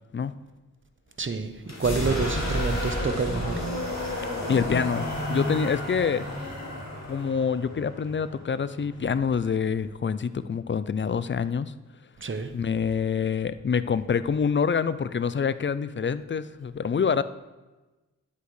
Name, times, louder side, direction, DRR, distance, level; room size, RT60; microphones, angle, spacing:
voice 1, 1.2-3.7 12.2-12.5, right 4 dB, 40° right, 9 dB, 0.8 m, -28 dB
sound 1, 1.6-9.4, left 1 dB, 55° left, 2.3 m, -31 dB
voice 2, 4.5-6.3 7.1-11.7 12.5-17.2, left 6 dB, 35° left, 15 dB, 0.4 m, -26 dB
10.0 x 8.3 x 3.2 m, 1.1 s
cardioid pair, 50°, 32 cm